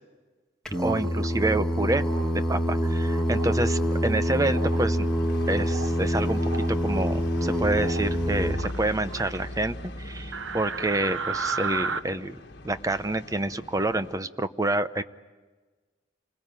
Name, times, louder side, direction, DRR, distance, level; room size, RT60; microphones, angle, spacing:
Singing, 0.6-8.5, equal, 5° left, 1.4 m, -26 dB
sound 1, 0.7-1.3 2.0-2.3 3.0-3.6 4.5-4.9 5.3-5.9 6.3-6.7 7.7-8.1 8.5-9.4 10.3-12.0, right 4 dB, 80° right, 0.9 m, -34 dB
voice 1, 0.8-2.0 2.5-5.1 5.5-6.4 6.7-12.4 12.6-15.0, right 2 dB, 15° right, 11 dB, 0.7 m, -28 dB
sound 2, 2.1-14.2, left 1 dB, 55° left, 1.7 m, -41 dB
28.0 x 21.0 x 9.1 m, 1.3 s
head